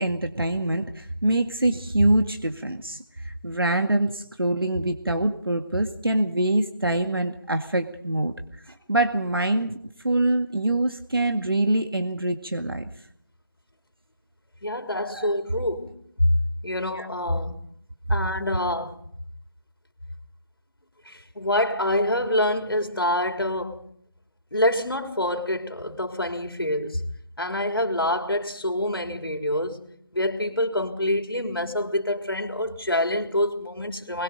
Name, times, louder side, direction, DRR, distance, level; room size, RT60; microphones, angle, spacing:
voice 1, 0.0-8.3 8.9-9.8 10.0-12.8 15.1-15.3 16.9-17.1, right 1 dB, 80° right, 2.0 m, -24 dB
voice 2, 14.6-16.3 16.6-17.6 18.1-18.9 21.1-23.8 24.5-27.0 27.4-29.8 30.1-34.2, left 1 dB, 90° left, 3.8 m, -26 dB
25.0 x 22.0 x 5.3 m
figure-of-eight pair, 170°, 12 cm